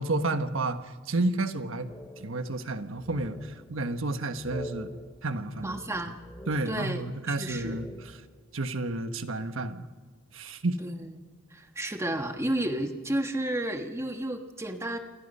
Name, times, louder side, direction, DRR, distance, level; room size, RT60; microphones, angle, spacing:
voice 1, 0.0-1.9 2.2-4.9 5.2-5.8 6.5-8.2 8.5-9.9 10.3-10.8, right 2 dB, 80° right, 8 dB, 1.3 m, -31 dB
sound 1, 1.9-2.7 3.0-3.9 4.3-7.2 7.4-8.5, left 1 dB, 15° left, 2.5 m, -45 dB
voice 2, 5.6-6.2 6.7-7.0 7.3-7.8 10.8-15.0, right 1 dB, 15° right, 5 dB, 1.5 m, -32 dB
28.5 x 22.5 x 5.5 m, 1.4 s
head